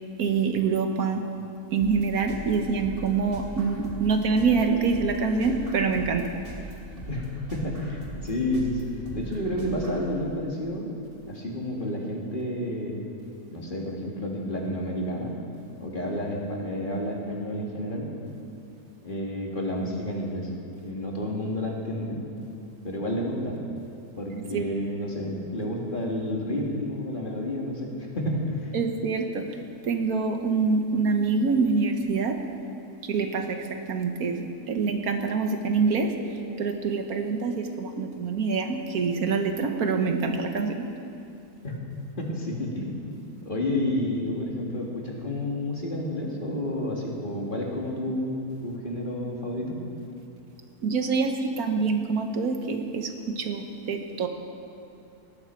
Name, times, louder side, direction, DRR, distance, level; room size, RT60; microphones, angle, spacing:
voice 1, 0.2-1.2 1.7-6.3 24.5-24.7 28.7-29.4 29.8-32.4 33.0-36.1 36.6-40.9 50.8-54.3, right 4 dB, 70° right, 5 dB, 1.5 m, -25 dB
sound 1, 1.8-10.1, right 1 dB, 35° right, 2.2 m, -41 dB
voice 2, 7.1-10.9 11.3-13.0 13.5-15.4 15.8-18.1 19.0-20.5 20.8-22.2 22.8-23.6 24.2-28.7 41.6-41.8 42.2-43.0 43.4-48.4 48.6-49.8, left 1 dB, 35° left, -2 dB, 2.1 m, -30 dB
18.5 x 14.0 x 4.5 m, 2.7 s
omnidirectional pair, 1.6 m